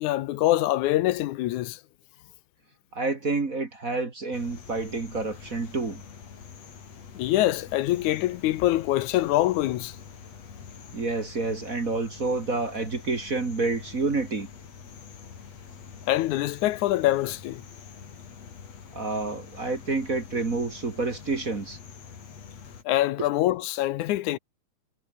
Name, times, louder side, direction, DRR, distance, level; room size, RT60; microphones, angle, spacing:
voice 1, 0.0-1.8 7.1-10.0 16.1-17.6 22.9-24.4, left 15 dB, 80° left, 2.2 m, -24 dB
voice 2, 2.9-6.0 10.9-14.5 18.9-21.8, right 3 dB, 30° right, 2.2 m, -29 dB
sound 1, 4.3-22.8, left 6 dB, 60° left, 4.0 m, -46 dB
omnidirectional pair, 3.5 m